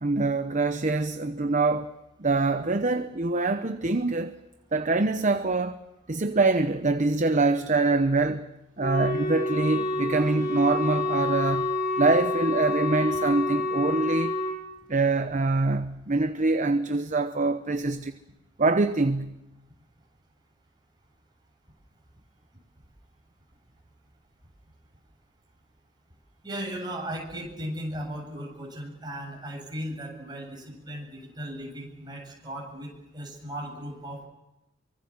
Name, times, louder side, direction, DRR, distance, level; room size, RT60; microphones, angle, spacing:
voice 1, 0.0-1.9 2.2-4.3 4.7-5.8 6.1-8.5 8.8-14.3 14.9-18.1 18.6-19.4, right 3 dB, 40° right, 0.9 m, -24 dB
Wind instrument woodwind instrument, 8.8-14.6, left 2 dB, 45° left, 7.9 m, -28 dB
voice 2, 26.4-34.3, equal, 20° right, 7.9 m, -37 dB
24.5 x 24.5 x 7.4 m
head